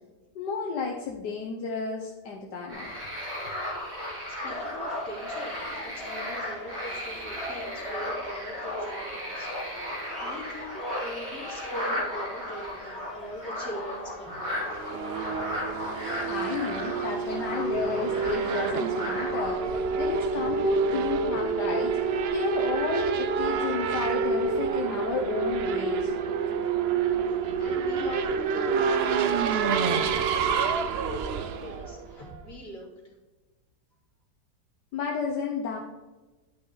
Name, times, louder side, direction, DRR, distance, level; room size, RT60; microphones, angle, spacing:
voice 1, 0.3-2.9 16.3-26.1 34.9-35.8, left 5 dB, 80° left, 0 dB, 1.6 m, -32 dB
sound 1, 2.7-19.5, left 1 dB, 40° right, 3.2 m, -35 dB
voice 2, 3.9-14.8 27.2-33.1, equal, 50° left, -4 dB, 3.2 m, -43 dB
sound 2, 4.4-14.5, left 1 dB, ahead, 2.5 m, -41 dB
Race car auto racing / Accelerating revving vroom, 14.4-32.6, right 5 dB, 80° right, 0.5 m, -28 dB
11.0 x 5.8 x 4.0 m, 1.2 s
omnidirectional pair, 1.8 m